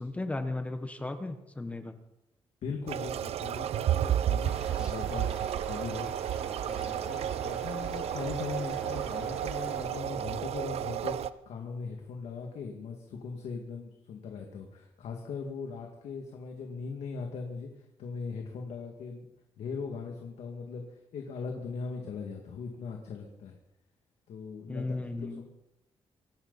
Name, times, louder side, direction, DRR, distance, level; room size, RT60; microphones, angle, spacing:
voice 1, 0.0-1.9 24.7-25.4, left 2 dB, 10° left, 8 dB, 1.0 m, -35 dB
voice 2, 2.6-6.1 6.6-19.3 19.6-23.6 24.3-25.4, left 5 dB, 80° left, 2 dB, 2.2 m, -40 dB
sound 1, 2.9-11.3, right 11 dB, 70° right, 0.6 m, -32 dB
sound 2, 4.4-9.8, equal, 10° right, 5.4 m, -46 dB
25.0 x 12.5 x 4.1 m, 0.87 s
wide cardioid pair, 175°, 11 cm